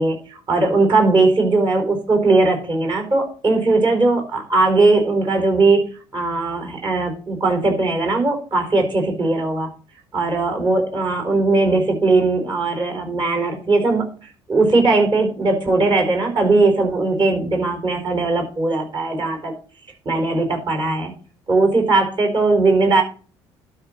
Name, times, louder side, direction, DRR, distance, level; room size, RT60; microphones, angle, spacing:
voice 1, 0.0-5.9 6.1-9.7 10.1-14.1 14.5-19.5 20.0-21.1 21.5-23.0, right 3 dB, 35° right, 5 dB, 4.6 m, -19 dB
12.0 x 4.7 x 7.4 m, 0.38 s
figure-of-eight pair, 50°, 14 cm